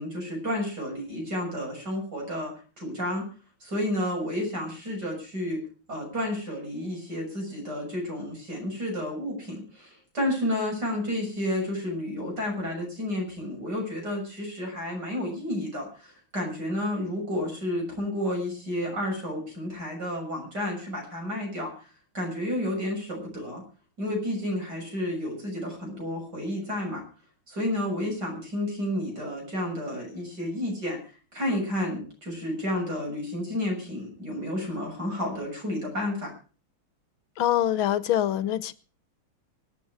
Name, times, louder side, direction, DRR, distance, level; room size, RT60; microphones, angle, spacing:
voice 1, 0.0-3.3 3.6-5.6 5.9-21.9 22.1-23.6 24.0-27.0 27.5-31.0 31.3-36.3, left 1 dB, 50° right, 7.2 m, -31 dB
voice 2, 37.4-38.7, left 11 dB, 80° left, 1.7 m, -24 dB
25.5 x 8.7 x 4.8 m
omnidirectional pair, 2.2 m